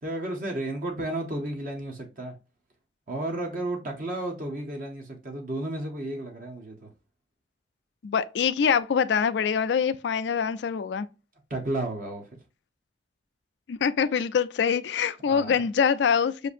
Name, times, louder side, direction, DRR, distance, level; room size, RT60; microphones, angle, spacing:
voice 1, 0.0-2.3 3.1-6.9 11.5-12.2 15.2-15.5, right 1 dB, 45° right, 0.8 m, -32 dB
voice 2, 8.0-11.1 13.7-16.5, left 7 dB, 75° left, 0.3 m, -24 dB
6.5 x 2.6 x 2.5 m
head